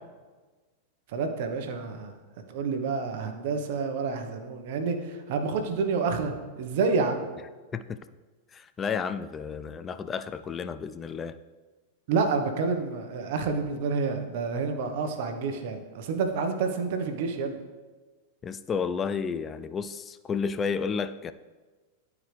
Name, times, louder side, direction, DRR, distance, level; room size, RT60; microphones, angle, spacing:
voice 1, 1.1-2.1 2.5-7.3 12.1-17.6, right 4 dB, 65° right, 6 dB, 1.0 m, -29 dB
voice 2, 8.5-11.4 18.4-21.3, left 6 dB, 25° left, 12 dB, 0.3 m, -31 dB
11.0 x 4.8 x 3.3 m, 1.3 s
hypercardioid pair, 110°, 0 cm